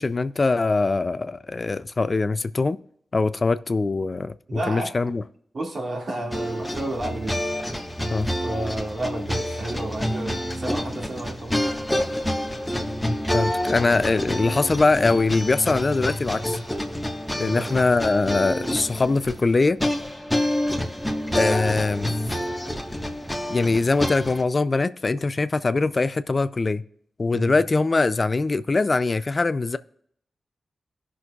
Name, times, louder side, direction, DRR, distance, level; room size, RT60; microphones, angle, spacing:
voice 1, 0.0-2.8 3.1-5.2 8.1-8.3 13.3-16.6 17.4-19.8 21.3-22.1 23.5-26.8 27.2-29.8, left 3 dB, 40° left, 0.4 m, -22 dB
voice 2, 4.5-4.9 5.5-7.4 8.4-11.6 12.1-12.2 17.4-17.7 27.3-27.5, right 1 dB, 60° right, 2.1 m, -31 dB
sound 1, 6.3-24.4, equal, 5° left, 1.4 m, -28 dB
17.5 x 6.2 x 2.4 m
cardioid pair, 70°, 0 cm